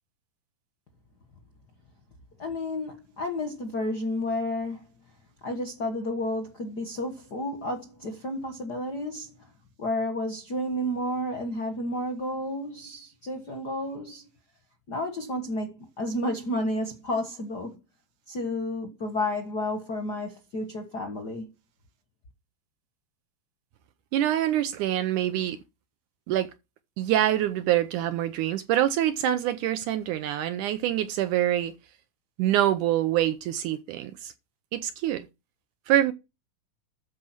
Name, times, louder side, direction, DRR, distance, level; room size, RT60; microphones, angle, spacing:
voice 1, 2.4-4.8 5.4-9.3 9.8-14.2 14.9-17.8 18.3-21.5, left 1 dB, 50° left, 1.2 m, -31 dB
voice 2, 24.1-25.6 26.3-26.5 27.0-31.7 32.4-34.3 34.7-35.3 35.9-36.1, right 12 dB, 75° right, 2.0 m, -25 dB
13.0 x 5.0 x 6.0 m
omnidirectional pair, 4.1 m